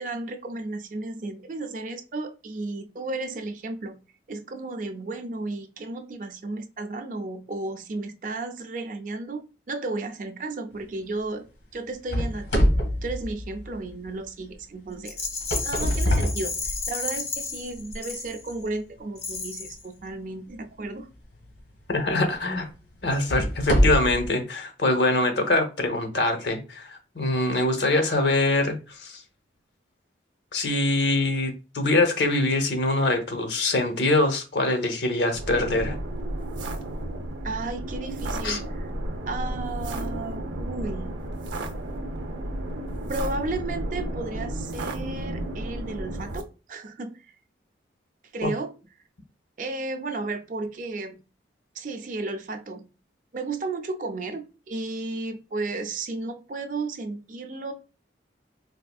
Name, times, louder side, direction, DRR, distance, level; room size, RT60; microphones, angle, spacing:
voice 1, 0.0-4.0 4.3-11.5 11.7-12.7 13.0-15.3 15.6-21.1 37.4-38.9 39.3-41.1 43.1-47.3 48.3-48.7 49.6-51.2 51.8-52.9 53.3-57.7, right 3 dB, 45° right, 7 dB, 0.4 m, -33 dB
sound 1, 12.1-14.1 15.2-17.2 17.8-17.9 18.6-18.7 21.3-21.5 22.1-22.2 23.0-24.3, equal, 90° left, 1.3 m, -25 dB
Rattle, 15.0-18.7 19.2-19.9, left 4 dB, 35° left, 0.5 m, -33 dB
voice 2, 21.9-22.7 23.0-29.2 30.5-36.0 38.4-38.6 48.4-48.5, left 2 dB, 70° left, 5 dB, 0.8 m, -24 dB
sound 2, 35.3-46.4, right 1 dB, 85° right, 0.6 m, -32 dB
4.2 x 2.5 x 2.3 m, 0.32 s
head